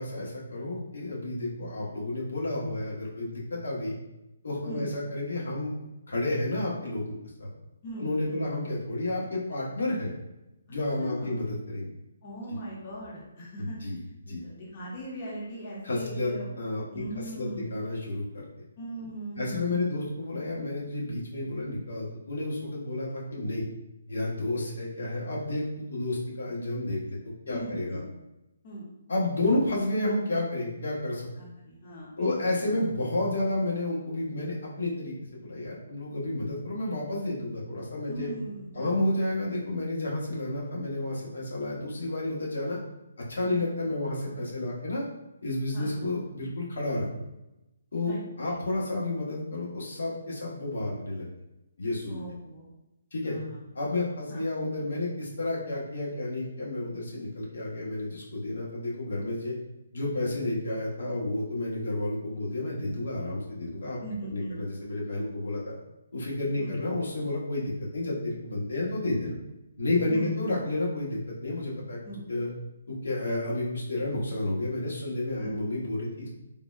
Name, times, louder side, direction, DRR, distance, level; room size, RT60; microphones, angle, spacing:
voice 1, 0.0-3.9 4.4-5.7 6.1-7.5 8.0-10.1 10.7-11.9 13.6-14.0 14.3-14.4 15.8-16.3 16.6-18.5 19.3-23.6 24.1-27.2 27.5-28.0 29.1-31.3 32.2-38.3 38.7-42.8 43.3-45.0 45.4-47.0 47.9-51.3 51.8-52.2 53.1-53.4 53.7-59.5 59.9-64.0 64.3-65.7 66.1-69.3 69.8-72.0 72.3-72.5 72.9-76.3, left 2 dB, 90° left, -4 dB, 1.1 m, -31 dB
voice 2, 7.8-8.4 10.7-11.3 12.2-13.9 14.3-16.5 16.9-17.7 18.8-19.9 27.5-28.0 28.6-28.9 31.3-32.5 38.1-38.9 43.4-43.6 44.5-44.8 45.7-46.0 48.1-48.2 48.4-48.5 52.1-52.7 53.2-53.6 54.3-54.4 64.0-64.6 66.6-66.7 70.1-70.3 72.0-72.2 75.4-75.5, right 1 dB, 25° left, -6 dB, 0.6 m, -40 dB
3.6 x 2.1 x 2.4 m, 0.95 s
hypercardioid pair, 180°, 0 cm